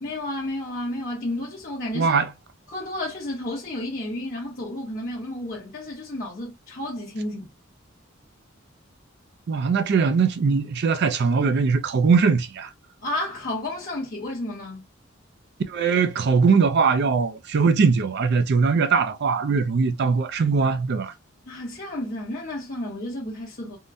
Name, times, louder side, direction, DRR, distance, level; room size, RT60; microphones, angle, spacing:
voice 1, 0.0-2.2 2.7-7.5 13.0-14.8 21.5-23.8, left 1 dB, 45° left, 1.0 m, -31 dB
voice 2, 1.9-2.3 9.5-12.7 15.7-21.1, right 5 dB, 55° right, 0.4 m, -21 dB
3.6 x 2.1 x 2.5 m
head